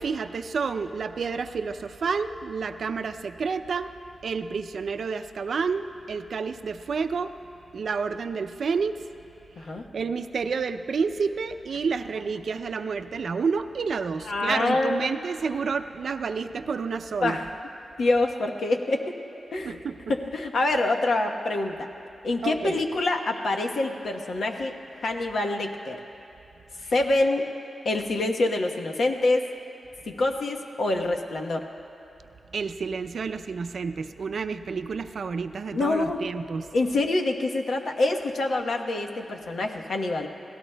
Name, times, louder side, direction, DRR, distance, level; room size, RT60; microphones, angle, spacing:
voice 1, 0.0-3.9 4.2-7.3 7.7-9.0 9.9-17.4 19.6-20.0 22.4-22.8 26.8-26.9 32.5-36.7, right 5 dB, 70° right, 9 dB, 0.5 m, -29 dB
voice 2, 14.2-15.1 17.2-17.5 18.0-19.2 19.5-19.8 20.1-21.9 22.2-24.7 25.0-26.0 26.9-27.5 27.8-29.4 30.1-31.7 35.7-36.3 36.7-40.3, left 2 dB, 75° left, 3 dB, 1.1 m, -26 dB
30.0 x 17.5 x 2.3 m, 2.9 s
wide cardioid pair, 90°, 0 cm